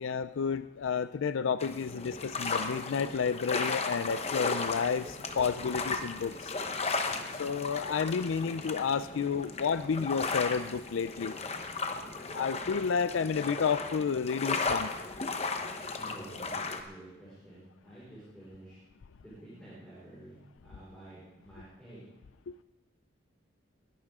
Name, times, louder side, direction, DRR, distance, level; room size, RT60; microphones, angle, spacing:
voice 1, 0.0-6.5 7.4-11.4 12.3-14.9 22.5-22.6, left 6 dB, 80° left, 13 dB, 0.4 m, -31 dB
sound 1, 1.6-16.8, left 3 dB, 30° left, 1.0 m, -35 dB
voice 2, 8.3-9.8 16.0-18.8 19.2-20.4 20.6-22.0, right 1 dB, 5° left, -9 dB, 4.9 m, -52 dB
21.5 x 11.5 x 3.6 m, 1.0 s
head